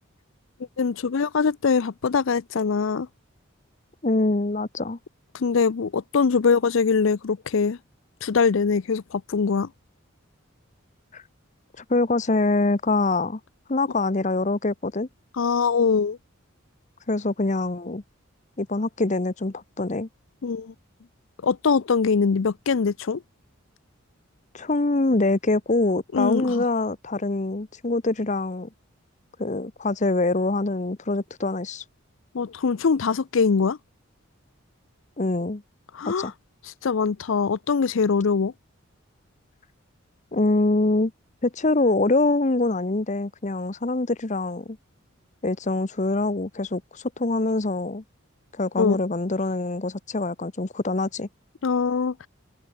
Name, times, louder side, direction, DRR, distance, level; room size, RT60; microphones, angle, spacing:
voice 1, 0.8-3.1 5.3-7.8 8.2-9.7 15.4-16.2 20.4-20.7 21.4-23.2 26.1-26.6 32.3-33.8 35.9-36.3 36.8-38.5 48.8-49.0 51.6-52.1, left 5 dB, 65° left, 0.5 m, -22 dB
voice 2, 4.0-5.0 11.1-11.2 11.8-13.4 13.7-15.1 17.1-18.0 18.6-20.1 24.5-28.7 29.4-31.8 35.2-35.6 36.0-36.3 40.3-41.1 41.4-44.8 45.4-48.0 48.5-51.3, left 2 dB, 35° left, 0.8 m, -24 dB
head